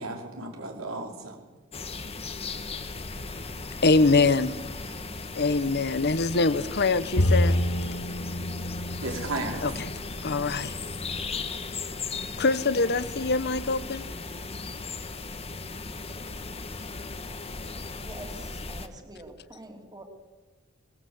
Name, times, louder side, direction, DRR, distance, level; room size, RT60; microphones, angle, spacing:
voice 1, 0.0-1.5 4.9-5.0 9.0-9.7, right 2 dB, 80° right, 2 dB, 5.0 m, -34 dB
sound 1, 1.7-18.9, left 3 dB, 30° left, 1.5 m, -37 dB
voice 2, 3.8-4.5 5.3-7.6 9.6-9.9 10.2-10.7 12.4-14.0, left 3 dB, 55° left, 14 dB, 1.0 m, -24 dB
Bowed string instrument, 7.2-10.6, left 1 dB, 85° left, 2.1 m, -28 dB
voice 3, 17.9-20.0, right 1 dB, 20° right, 4 dB, 3.2 m, -46 dB
24.0 x 19.5 x 8.1 m, 1.3 s
head